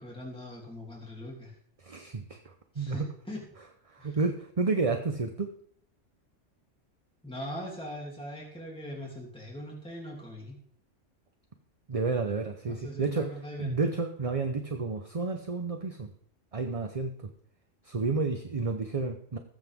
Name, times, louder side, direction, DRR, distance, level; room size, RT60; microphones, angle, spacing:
voice 1, 0.0-1.5 2.7-3.4 4.0-4.2 7.2-10.6 12.6-13.8, equal, 5° left, -3 dB, 2.9 m, -41 dB
voice 2, 1.8-3.1 3.9-5.5 11.9-16.1 16.5-17.1 17.8-19.4, right 4 dB, 30° right, 6 dB, 0.8 m, -31 dB
19.5 x 8.1 x 3.6 m, 0.63 s
omnidirectional pair, 1.3 m